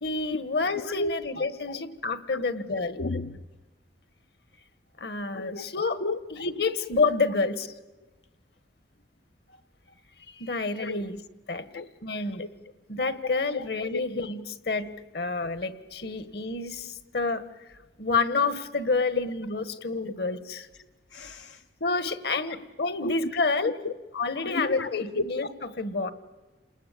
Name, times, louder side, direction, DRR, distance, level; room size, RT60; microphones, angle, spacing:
voice 1, 0.0-3.0 5.0-6.0 6.3-7.7 10.3-11.2 11.5-11.6 12.0-12.5 12.9-14.9 15.1-17.4 18.0-20.7 21.8-23.8 24.1-25.5 25.8-26.1, left 3 dB, 65° left, 1.6 m, -28 dB
voice 2, 0.8-1.1 2.3-2.4 3.0-3.4 5.3-5.6 6.0-6.2 10.8-11.0 11.7-11.9 13.5-13.6 13.9-14.0 21.1-21.6 23.0-23.1 23.8-23.9 24.4-24.9 25.2-25.3, left 2 dB, 85° left, 0.8 m, -32 dB
29.0 x 20.0 x 8.5 m
head